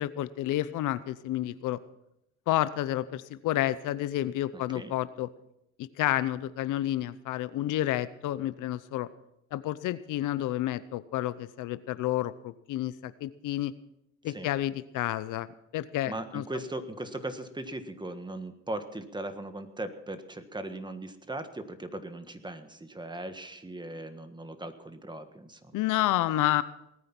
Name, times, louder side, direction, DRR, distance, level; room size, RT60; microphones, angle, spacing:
voice 1, 0.0-1.8 2.5-5.3 6.0-9.1 9.5-13.7 14.2-15.5 15.7-16.4 25.7-26.6, left 14 dB, 85° left, 15 dB, 0.7 m, -30 dB
voice 2, 16.1-25.8, right 1 dB, 15° right, 9 dB, 1.5 m, -39 dB
19.0 x 9.5 x 6.0 m, 0.81 s
cardioid pair, 90°, 30 cm